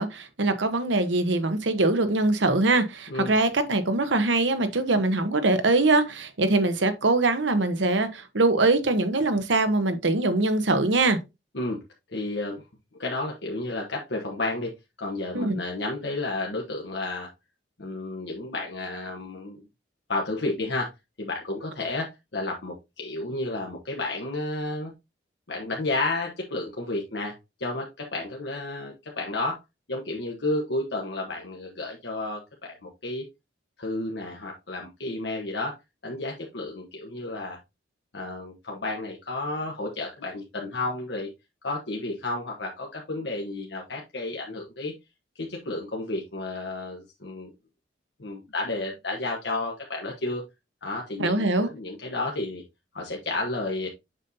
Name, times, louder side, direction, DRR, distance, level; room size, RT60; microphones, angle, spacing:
voice 1, 0.0-11.2 15.3-15.6 51.2-51.7, right 2 dB, 85° right, 1.0 m, -23 dB
voice 2, 12.1-12.6 13.0-14.7 15.0-17.3 17.8-19.6 20.1-20.9 21.2-24.9 25.5-27.3 27.6-29.6 29.9-33.2 33.8-35.7 36.0-37.6 38.1-41.3 41.6-44.9 45.4-47.5 48.2-50.4 50.8-52.6 52.9-53.9, left 2 dB, 70° left, 1.2 m, -31 dB
7.3 x 5.4 x 2.7 m
head